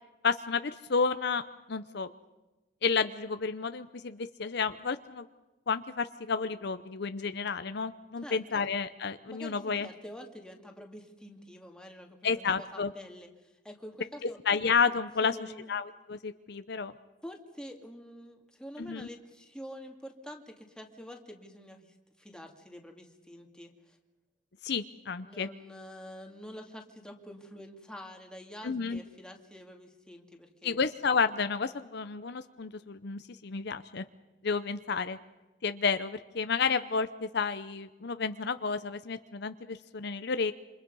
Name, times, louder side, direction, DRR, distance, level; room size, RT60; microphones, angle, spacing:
voice 1, 0.2-1.4 1.7-2.1 2.8-5.2 5.7-9.9 12.2-12.9 14.2-15.4 15.7-16.9 18.8-19.1 24.6-25.5 28.6-29.0 30.6-34.0 34.4-35.2 35.6-40.5, left 5 dB, 60° left, 11 dB, 0.7 m, -31 dB
voice 2, 8.2-8.7 9.3-14.4 15.2-15.7 17.2-24.0 25.2-30.9, equal, 5° left, 2 dB, 2.3 m, -47 dB
27.5 x 26.0 x 5.5 m, 1.1 s
head